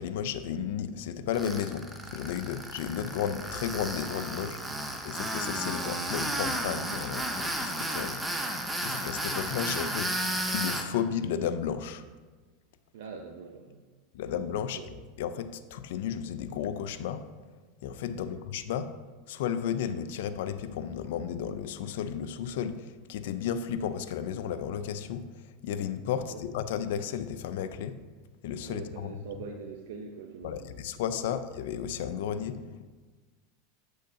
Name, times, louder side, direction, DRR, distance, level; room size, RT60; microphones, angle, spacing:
voice 1, 0.0-4.6 5.0-8.2 8.8-10.1 10.5-12.0 14.1-14.8 15.2-17.2 17.8-18.9 19.3-25.2 25.6-28.0 28.4-29.1 30.4-32.9, left 8 dB, 75° left, 11 dB, 0.4 m, -33 dB
Tools, 1.3-10.8, right 1 dB, 10° right, 0.7 m, -33 dB
voice 2, 12.9-13.8 14.7-14.9 18.3-18.4 26.3-26.4 28.6-30.8 31.1-31.4, right 5 dB, 75° right, 2 dB, 0.6 m, -43 dB
8.5 x 6.4 x 2.8 m, 1.3 s
supercardioid pair, 120°, 0 cm